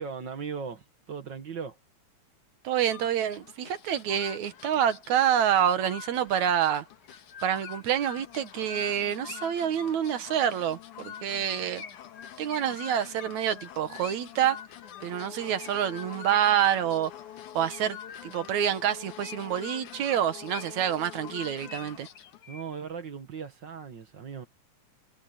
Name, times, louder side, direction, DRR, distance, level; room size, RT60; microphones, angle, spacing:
voice 1, 0.0-1.8 22.5-24.5, right 6 dB, 45° right, 1.7 m, -38 dB
voice 2, 2.6-6.9 7.4-11.8 12.4-14.6 15.0-17.1 17.5-18.0 18.2-22.1, right 9 dB, 70° right, 2.6 m, -27 dB
sound 1, 2.8-22.5, left 10 dB, 80° left, 3.0 m, -46 dB
Chirp tweet, 6.3-6.4 7.0-9.7 11.8-14.4 15.6-17.2 17.7-18.6 19.2-20.9 21.4-22.9, left 6 dB, 45° left, 1.9 m, -47 dB
omnidirectional pair, 3.4 m